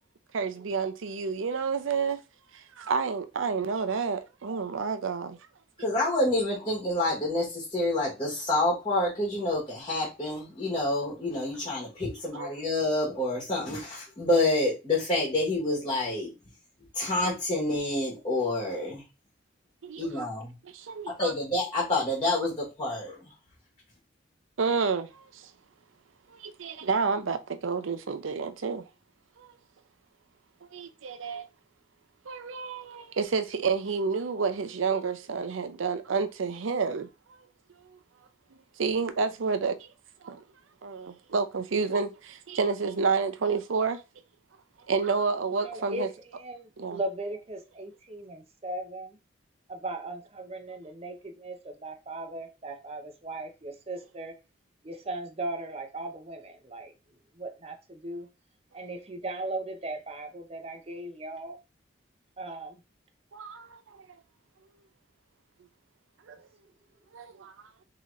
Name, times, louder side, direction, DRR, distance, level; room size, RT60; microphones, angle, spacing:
voice 1, 0.3-2.2 2.8-5.4 12.3-12.5 19.8-20.3 20.7-21.3 24.6-25.4 26.4-28.8 29.4-29.5 30.7-31.5 32.3-37.1 38.8-39.9 40.2-40.4 40.8-44.0 44.9-46.1 46.8-47.0 63.3-64.0 66.3-66.4 67.1-67.5, right 5 dB, 85° right, 0.6 m, -29 dB
voice 2, 5.8-16.3 16.9-19.0 20.0-20.5 21.2-23.3, left 2 dB, 25° left, 1.2 m, -28 dB
voice 3, 45.6-49.2 49.7-54.4 54.8-56.9 57.3-58.3 58.7-61.6 62.4-62.8, right 2 dB, 30° right, 0.6 m, -38 dB
3.7 x 2.9 x 3.1 m
head